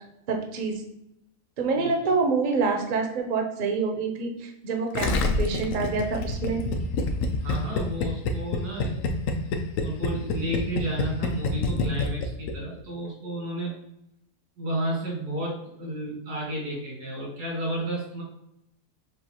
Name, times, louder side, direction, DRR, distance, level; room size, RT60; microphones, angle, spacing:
voice 1, 0.3-0.8 1.6-6.6, right 4 dB, 50° right, 3 dB, 0.5 m, -27 dB
Gurgling, 4.9-12.5 12.8-12.9, left 3 dB, 70° left, 0.9 m, -26 dB
voice 2, 7.4-9.1 9.8-13.8 14.6-18.2, right 1 dB, 90° right, -4 dB, 2.4 m, -32 dB
6.4 x 2.5 x 2.8 m, 0.80 s
omnidirectional pair, 1.7 m